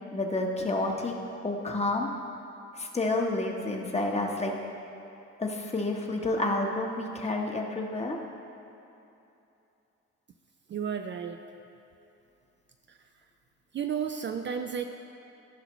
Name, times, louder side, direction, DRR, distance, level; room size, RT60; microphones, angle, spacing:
voice 1, 0.1-1.1 1.4-2.1 2.7-4.5 5.4-8.2, left 2 dB, 20° left, 1 dB, 1.0 m, -29 dB
voice 2, 10.7-11.4 12.9-13.0 13.7-14.9, right 7 dB, 40° right, 5 dB, 0.4 m, -32 dB
14.5 x 5.6 x 3.1 m, 2.8 s
cardioid pair, 90°, 30 cm